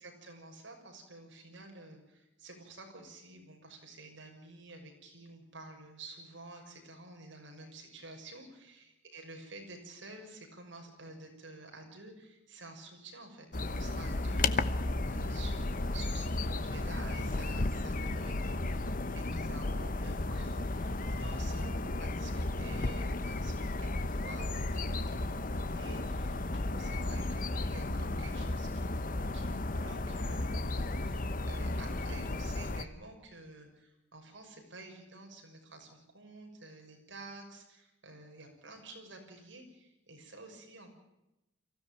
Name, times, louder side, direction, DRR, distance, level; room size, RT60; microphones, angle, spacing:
voice 1, 0.0-40.9, right 2 dB, 65° right, 3 dB, 6.3 m, -50 dB
sound 1, 13.5-32.8, left 2 dB, 45° left, 1.0 m, -34 dB
23.5 x 16.0 x 9.1 m, 0.93 s
head